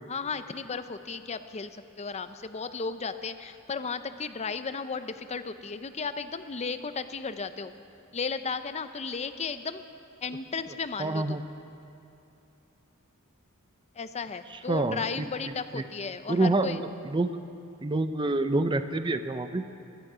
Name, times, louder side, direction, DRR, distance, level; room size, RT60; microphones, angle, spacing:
voice 1, 0.1-7.7 8.1-9.8 10.2-11.4 14.0-16.8, left 5 dB, 30° left, 11 dB, 0.6 m, -35 dB
voice 2, 11.0-11.4 14.5-15.3 15.7-15.8 16.3-17.4 17.8-19.6, right 2 dB, 20° right, 9 dB, 0.5 m, -27 dB
22.5 x 12.0 x 4.9 m, 2.8 s
head